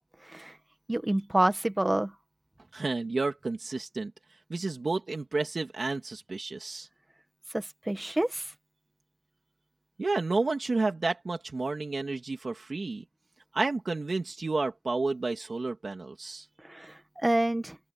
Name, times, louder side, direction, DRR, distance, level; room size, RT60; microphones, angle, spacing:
voice 1, 0.2-0.6 0.9-2.1 7.5-8.5 16.6-17.8, right 1 dB, 10° right, 1.3 m, -28 dB
voice 2, 2.7-4.1 4.5-6.9 10.0-13.0 13.5-16.5, right 3 dB, 30° right, 2.9 m, -31 dB
open air
wide cardioid pair, 160°, 0 cm